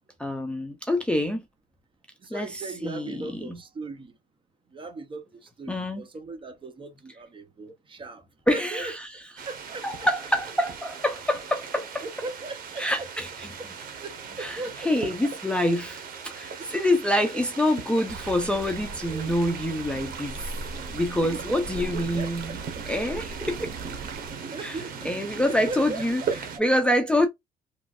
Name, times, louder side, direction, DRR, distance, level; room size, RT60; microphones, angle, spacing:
voice 1, 0.2-1.4 2.3-3.6 5.7-6.1 8.5-9.1 9.8-11.8 12.8-13.5 14.4-20.6 20.9-22.6 22.9-23.7 24.6-24.8 25.0-26.2 26.6-27.3, left 1 dB, 5° left, 0.5 m, -26 dB
voice 2, 2.2-4.1 4.7-8.9 9.5-10.1 12.0-13.1 13.6-13.7 14.0-14.9 15.2-15.3 16.5-16.7 17.3-17.4 19.0-19.3 20.7-22.3 22.8-22.9 24.5-25.0 25.4-26.4, right 3 dB, 30° right, 0.8 m, -38 dB
sound 1, 9.4-26.6, right 6 dB, 55° right, 1.1 m, -39 dB
sound 2, 18.1-24.3, right 3 dB, 70° right, 0.8 m, -39 dB
3.0 x 2.5 x 2.4 m
cardioid pair, 110°, 17 cm